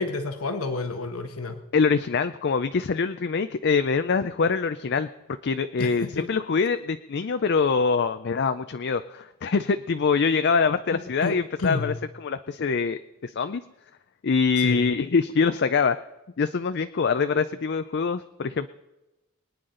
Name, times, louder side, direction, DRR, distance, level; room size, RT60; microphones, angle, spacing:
voice 1, 0.0-1.6 5.8-6.3 10.9-12.0 14.6-14.8, left 3 dB, 75° left, 7 dB, 1.1 m, -30 dB
voice 2, 1.7-5.1 5.4-13.6 14.2-16.0 16.4-18.7, left 5 dB, 50° left, 10 dB, 0.4 m, -24 dB
24.0 x 9.6 x 3.8 m, 1.0 s
head